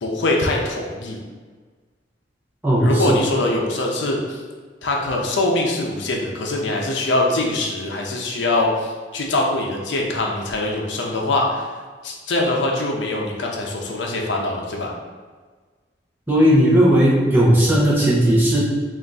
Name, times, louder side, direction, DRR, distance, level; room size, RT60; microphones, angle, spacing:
voice 1, 0.0-1.2 2.8-4.4 4.8-11.7 12.0-14.9, left 2 dB, 75° left, 0 dB, 0.6 m, -23 dB
voice 2, 2.6-3.1 16.3-18.6, equal, 10° right, -7 dB, 0.8 m, -16 dB
3.5 x 2.5 x 3.9 m, 1.5 s
head